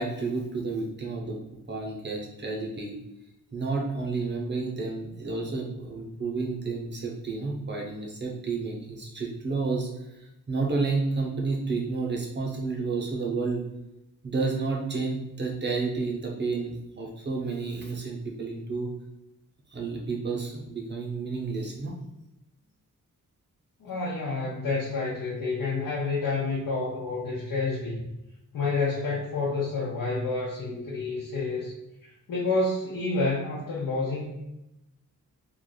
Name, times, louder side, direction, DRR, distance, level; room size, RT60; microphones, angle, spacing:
voice 1, 0.0-1.4 1.7-3.0 3.5-9.9 10.5-13.6 14.2-18.9 19.7-21.9, right 4 dB, 30° right, -1 dB, 0.7 m, -30 dB
voice 2, 23.8-28.0 28.5-31.7 32.0-34.3, left 3 dB, 75° left, -5 dB, 0.8 m, -29 dB
3.3 x 2.4 x 3.8 m, 0.92 s
wide cardioid pair, 175°, 33 cm